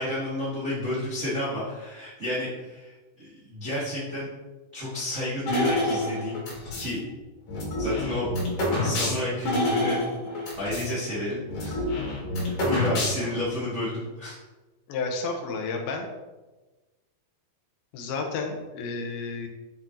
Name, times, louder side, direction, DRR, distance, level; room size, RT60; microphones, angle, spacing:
voice 1, 0.0-4.3 4.7-6.4 6.8-7.0 7.8-10.0 10.6-11.8 12.3-14.4, left 1 dB, 80° right, -9 dB, 0.6 m, -31 dB
sound 1, 5.5-6.9 7.5-10.9 11.2-11.3 11.5-13.5, left 1 dB, 60° left, 3.3 m, -28 dB
voice 2, 14.9-16.1 17.9-19.5, left 4 dB, 85° left, 2 dB, 2.7 m, -31 dB
7.7 x 6.1 x 2.8 m, 1.2 s
omnidirectional pair, 4.4 m